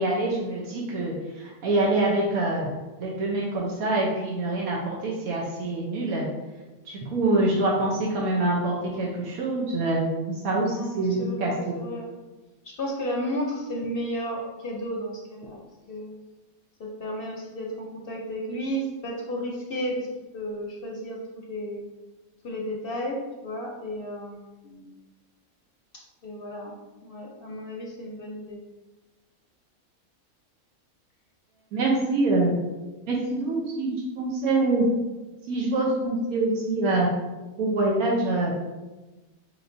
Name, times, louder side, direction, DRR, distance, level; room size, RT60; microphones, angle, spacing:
voice 1, 0.0-2.7 3.0-6.3 6.9-11.7 31.7-32.5 33.1-33.9 34.2-34.9 35.5-37.1 37.6-38.5, right 2 dB, 85° right, -3 dB, 1.2 m, -25 dB
voice 2, 7.2-7.5 10.7-12.1 12.6-15.6 15.9-16.2 16.8-21.8 22.4-24.9 25.9-26.7 27.0-28.6, equal, 55° left, -1 dB, 0.7 m, -33 dB
4.9 x 3.2 x 2.5 m, 1.1 s
omnidirectional pair, 1.5 m